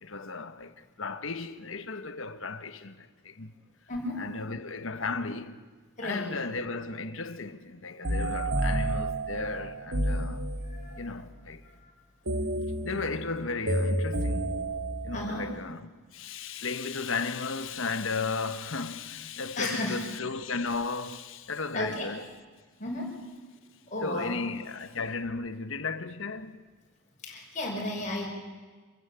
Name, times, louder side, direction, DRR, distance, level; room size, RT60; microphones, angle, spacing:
voice 1, 0.0-3.5 4.2-5.6 6.0-10.5 11.0-11.6 12.8-14.7 15.0-22.2 24.0-26.6, left 4 dB, 65° left, 1.3 m, -35 dB
voice 2, 3.9-4.2 6.0-6.3 10.7-11.0 15.1-15.4 19.6-20.0 21.7-22.1 22.8-23.1 23.9-24.4 27.2-28.3, left 1 dB, 35° left, 6.1 m, -33 dB
sound 1, 8.0-11.0 12.3-15.5, right 1 dB, 65° right, 2.5 m, -30 dB
27.5 x 15.5 x 8.3 m
head